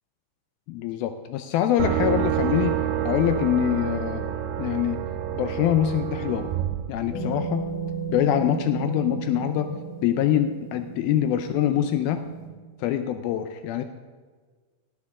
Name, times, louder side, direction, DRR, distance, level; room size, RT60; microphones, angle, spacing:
voice 1, 0.7-2.8 3.1-4.3 4.6-5.0 5.4-6.5 6.9-7.7 8.1-12.2 12.8-13.8, left 11 dB, 90° left, 8 dB, 2.1 m, -24 dB
sound 1, 1.8-7.7, right 10 dB, 85° right, 2.7 m, -28 dB
sound 2, 7.1-12.5, right 6 dB, 70° left, 5.7 m, -34 dB
17.5 x 9.7 x 3.7 m, 1.5 s
omnidirectional pair, 5.0 m